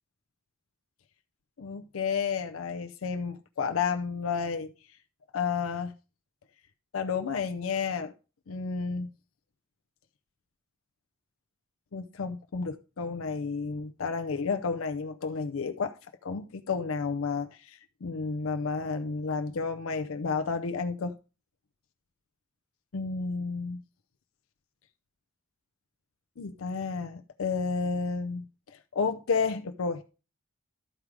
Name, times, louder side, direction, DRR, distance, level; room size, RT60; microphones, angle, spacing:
voice 1, 1.6-4.7 5.3-5.9 6.9-8.1 8.5-9.1 11.9-16.0 16.2-21.1 22.9-23.8 26.4-28.4 28.9-30.0, left 5 dB, 80° left, 0.5 m, -31 dB
12.0 x 4.7 x 4.9 m
head